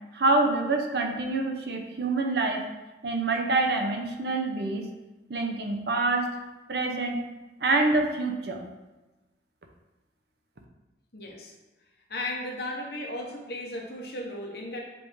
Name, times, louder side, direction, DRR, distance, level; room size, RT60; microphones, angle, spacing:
voice 1, 0.1-2.7 3.0-4.9 5.3-6.3 6.7-7.2 7.6-8.6, right 3 dB, 65° right, 3 dB, 0.7 m, -26 dB
voice 2, 11.1-11.5 12.1-14.8, left 1 dB, 60° left, 0 dB, 1.1 m, -35 dB
7.8 x 3.4 x 3.6 m, 1.1 s
head